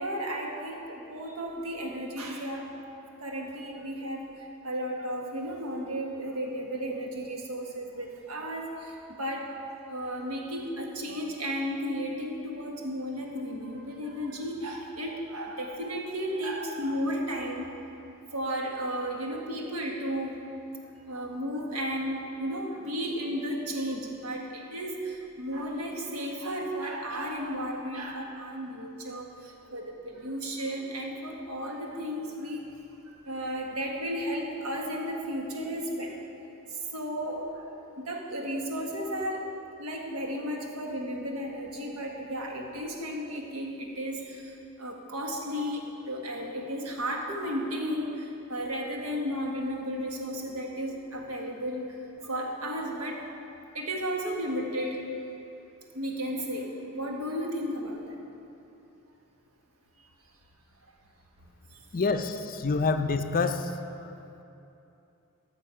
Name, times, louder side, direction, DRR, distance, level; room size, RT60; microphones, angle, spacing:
voice 1, 0.0-2.7 3.2-9.6 9.9-17.8 18.3-20.5 21.0-32.8 33.0-36.2 36.7-39.5 39.8-53.2 53.7-55.0 55.9-58.2 61.7-61.8, equal, 70° right, 0 dB, 1.5 m, -34 dB
voice 2, 61.9-63.7 64.0-64.1, left 4 dB, 40° left, 8 dB, 0.5 m, -27 dB
13.5 x 6.8 x 5.6 m, 2.8 s
head